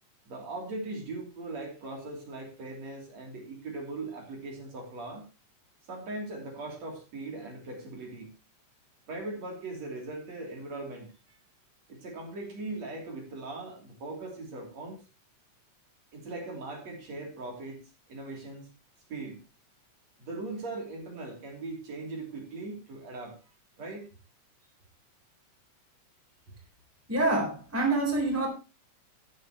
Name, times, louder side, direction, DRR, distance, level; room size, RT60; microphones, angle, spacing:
voice 1, 0.3-5.3 5.9-8.3 9.1-11.4 11.9-15.0 16.1-17.8 18.1-18.7 19.1-19.4 20.2-23.4 23.8-24.1, right 2 dB, 60° right, 0 dB, 4.3 m, -39 dB
voice 2, 27.1-28.5, right 2 dB, 5° right, 1 dB, 3.7 m, -26 dB
12.5 x 11.5 x 3.1 m, 0.30 s
omnidirectional pair, 3.5 m